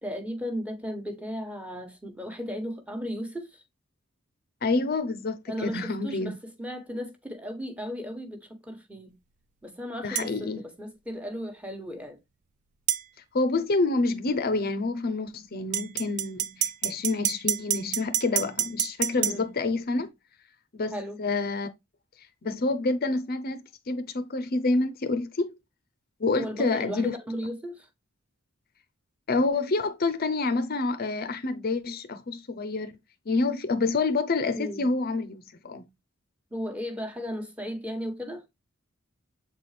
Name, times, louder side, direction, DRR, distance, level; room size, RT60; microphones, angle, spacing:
voice 1, 0.0-3.6 5.5-9.1 9.6-12.2 19.2-19.5 20.9-21.2 26.4-27.9 34.5-34.9 36.5-38.4, equal, 5° right, 1.2 m, -35 dB
voice 2, 4.6-6.4 10.0-10.6 13.3-20.1 20.7-21.7 22.4-25.6 26.2-27.1 29.3-32.9 33.3-35.8, left 3 dB, 45° left, 0.6 m, -28 dB
sound 1, 10.2-10.3 12.9-13.0 15.7-19.4, right 11 dB, 35° right, 0.3 m, -27 dB
7.4 x 4.2 x 3.2 m
head